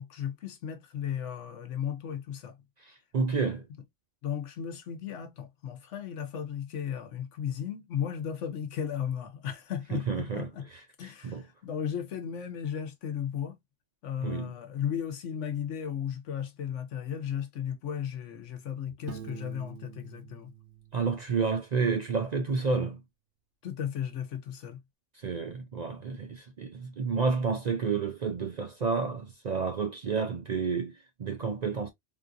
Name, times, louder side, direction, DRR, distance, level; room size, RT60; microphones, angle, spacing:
voice 1, 0.0-2.6 4.2-10.7 11.0-13.6 14.0-20.5 23.6-24.8, left 8 dB, 85° left, 1.2 m, -35 dB
voice 2, 2.8-3.7 9.9-11.4 14.2-14.5 20.9-23.0 25.2-31.9, right 5 dB, 55° right, 0.5 m, -30 dB
Piano, 19.1-21.8, right 8 dB, 70° right, 1.0 m, -46 dB
3.7 x 2.5 x 2.5 m
omnidirectional pair, 1.2 m